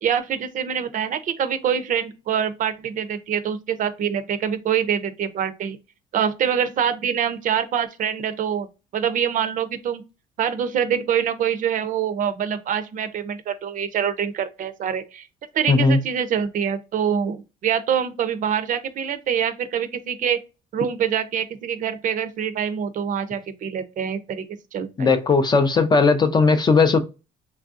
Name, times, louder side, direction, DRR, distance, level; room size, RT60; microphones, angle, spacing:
voice 1, 0.0-5.8 6.1-8.7 8.9-10.0 10.4-15.3 15.5-20.4 20.7-24.5 24.7-25.1, right 8 dB, 50° right, 0.5 m, -25 dB
voice 2, 15.7-16.0 25.0-27.0, left 4 dB, 25° left, 0.4 m, -17 dB
3.2 x 2.5 x 2.4 m
cardioid pair, 110°, 17 cm